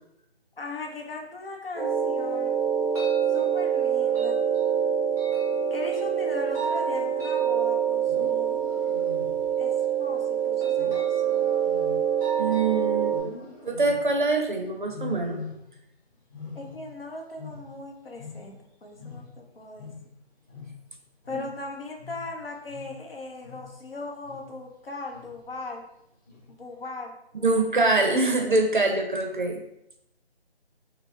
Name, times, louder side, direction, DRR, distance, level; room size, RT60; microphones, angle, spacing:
voice 1, 0.6-2.6 3.3-4.4 5.7-8.7 9.6-11.5 16.5-19.9 21.3-25.9 26.5-28.0, left 3 dB, 60° left, 2 dB, 0.7 m, -39 dB
sound 1, 1.7-13.2, right 8 dB, ahead, 0.8 m, -25 dB
Wild animals, 7.9-9.7 10.7-12.6 13.1-14.3 14.9-15.9 16.2-18.7 18.9-23.9 24.2-24.7 25.1-25.5 26.3-26.7, left 4 dB, 20° left, 1.2 m, -43 dB
voice 2, 12.4-13.1 13.7-15.4 27.4-29.6, right 3 dB, 50° right, 2 dB, 0.5 m, -24 dB
4.4 x 2.0 x 2.5 m, 0.78 s
figure-of-eight pair, 165°, 33 cm